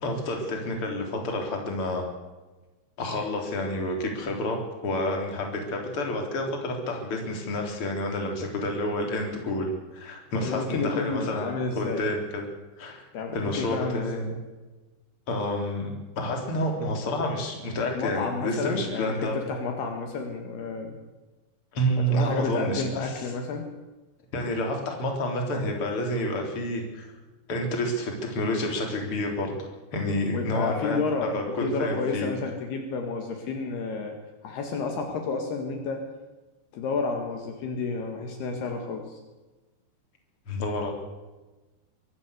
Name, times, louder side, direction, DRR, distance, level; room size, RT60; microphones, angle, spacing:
voice 1, 0.0-2.1 3.0-12.4 12.8-13.1 13.3-14.4 15.3-15.9 16.2-19.4 21.7-23.1 24.3-27.1 27.5-31.0 31.3-32.3 40.5-40.9, left 1 dB, 30° left, 2 dB, 4.0 m, -29 dB
voice 2, 10.4-12.1 13.1-14.3 17.9-21.0 22.1-23.7 30.3-34.2 34.4-36.0 36.7-39.2, left 4 dB, 65° left, 4 dB, 3.7 m, -31 dB
24.0 x 14.0 x 8.2 m, 1.2 s
omnidirectional pair, 5.1 m